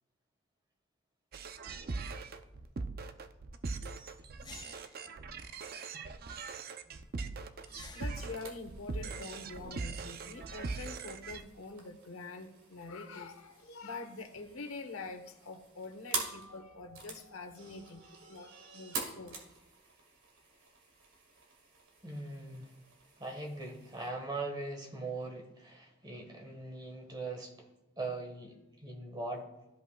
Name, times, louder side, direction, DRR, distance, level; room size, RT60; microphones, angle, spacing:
sound 1, 1.3-11.4, right 4 dB, 45° right, 0.4 m, -41 dB
sound 2, 2.3-2.4 4.4-5.1 7.6-8.4, left 5 dB, 20° left, 0.4 m, -52 dB
voice 1, 7.9-18.0 18.3-19.4, left 3 dB, 90° left, 5 dB, 1.0 m, -45 dB
sound 3, 8.1-24.1, right 4 dB, 75° right, 1.8 m, -47 dB
voice 2, 22.0-22.7 23.2-27.7 28.0-29.5, right 2 dB, 20° right, 2 dB, 1.3 m, -41 dB
13.5 x 5.4 x 2.3 m, 0.96 s
head